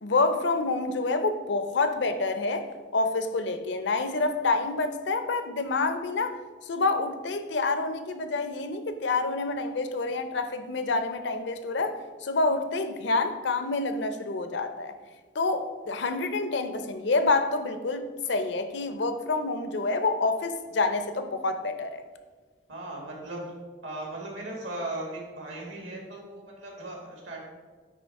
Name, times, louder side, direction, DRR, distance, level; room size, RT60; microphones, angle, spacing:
voice 1, 0.0-2.7 2.9-14.9 15.3-22.0, left 3 dB, 65° left, 9 dB, 0.6 m, -28 dB
voice 2, 22.7-23.4 23.8-27.4, right 2 dB, 80° right, -1 dB, 1.8 m, -37 dB
9.4 x 3.2 x 4.6 m, 1.4 s
head